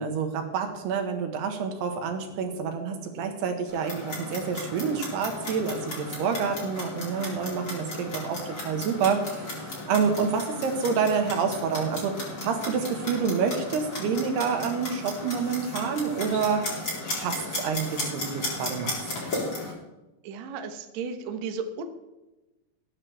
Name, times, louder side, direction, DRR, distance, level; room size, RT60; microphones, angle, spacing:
voice 1, 0.0-12.2 12.4-16.7 17.2-19.0, right 6 dB, 90° right, 5 dB, 3.6 m, -28 dB
Clock, 3.7-19.7, left 2 dB, 30° left, 4.5 m, -35 dB
voice 2, 20.2-21.8, right 5 dB, 65° right, 6 dB, 1.8 m, -34 dB
20.0 x 9.7 x 3.5 m, 1.0 s
omnidirectional pair, 4.5 m